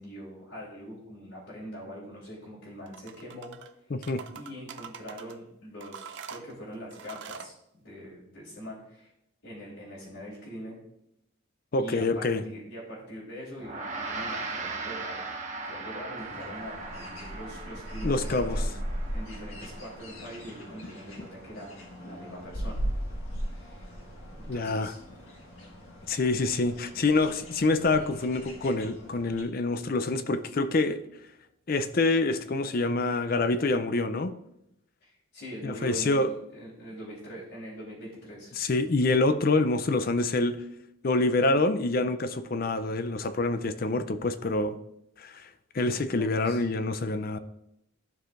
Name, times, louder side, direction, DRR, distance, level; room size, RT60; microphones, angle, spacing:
voice 1, 0.0-3.5 4.3-9.1 9.4-10.8 11.8-15.2 15.6-18.7 19.1-22.8 23.5-23.9 24.3-25.1 35.0-38.5 46.2-46.6, equal, 70° left, 3.0 m, -43 dB
sound 1, 2.9-3.7 4.0-5.4 5.8-7.5, right 7 dB, 55° right, 0.5 m, -44 dB
voice 2, 3.9-4.2 11.7-12.4 18.0-18.6 24.5-24.9 26.1-31.0 31.7-34.3 35.6-36.3 38.5-40.6 41.0-44.8 45.2-45.5 45.7-47.4, left 2 dB, 45° left, 0.5 m, -26 dB
Gong, 13.6-23.1, right 3 dB, 35° right, 1.0 m, -40 dB
sound 2, 16.2-29.4, equal, 90° left, 1.8 m, -38 dB
14.0 x 4.8 x 2.5 m
head